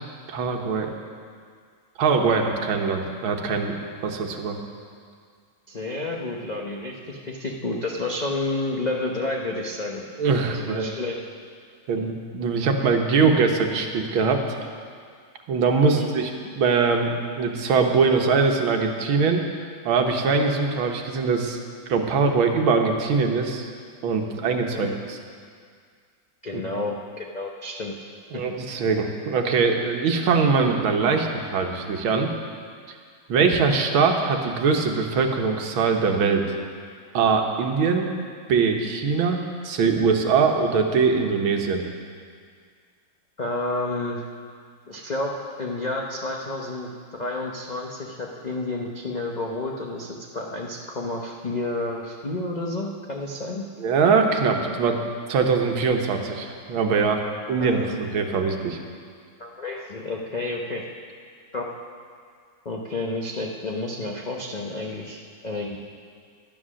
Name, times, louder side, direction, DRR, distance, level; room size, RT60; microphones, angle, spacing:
voice 1, 0.3-0.9 2.0-4.6 10.2-10.9 11.9-14.6 15.5-16.3 16.6-19.4 19.9-21.6 21.9-23.7 24.0-25.2 26.5-26.6 28.3-32.3 33.3-36.5 37.1-38.2 38.5-41.9 53.8-55.0 55.3-57.2 57.5-58.8, right 5 dB, 80° right, 3 dB, 1.9 m, -22 dB
voice 2, 5.7-10.0 10.5-11.2 12.0-12.1 15.9-16.1 24.7-24.9 26.4-27.9 28.3-28.4 43.4-44.2 44.9-53.6 57.6-58.0 59.4-60.9 61.5-61.7 62.6-65.8, left 2 dB, 85° left, -1 dB, 0.3 m, -30 dB
12.0 x 9.9 x 6.3 m, 2.1 s
omnidirectional pair, 2.2 m